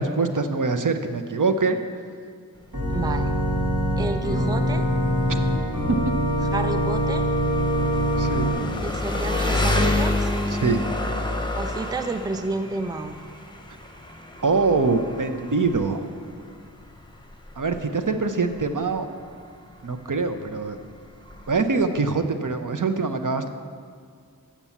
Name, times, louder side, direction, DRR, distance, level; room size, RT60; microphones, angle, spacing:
voice 1, 0.0-1.8 8.2-8.5 10.5-10.8 14.4-16.0 17.6-19.1 19.8-20.8 21.5-23.5, right 4 dB, 55° right, 8 dB, 0.7 m, -24 dB
Engine, 2.6-22.1, left 2 dB, 10° left, 0.9 m, -30 dB
Organ, 2.7-8.5, equal, 75° right, 2.9 m, -23 dB
voice 2, 2.9-3.3 4.0-4.8 6.5-7.2 8.8-10.3 11.5-13.2, right 3 dB, 10° right, 9 dB, 0.4 m, -30 dB
7.3 x 6.7 x 7.2 m, 2.1 s
wide cardioid pair, 40°, 37 cm